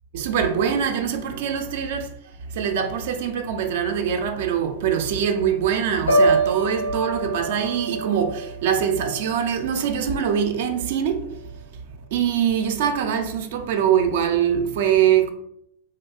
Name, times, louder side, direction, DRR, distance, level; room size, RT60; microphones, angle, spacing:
voice 1, 0.1-2.1 2.5-11.3 12.1-15.3, right 8 dB, 55° right, 0.3 m, -23 dB
Piano, 6.1-10.0 10.4-10.8, right 2 dB, 80° left, 0.6 m, -25 dB
2.8 x 2.3 x 2.2 m
figure-of-eight pair, 90°, 0 cm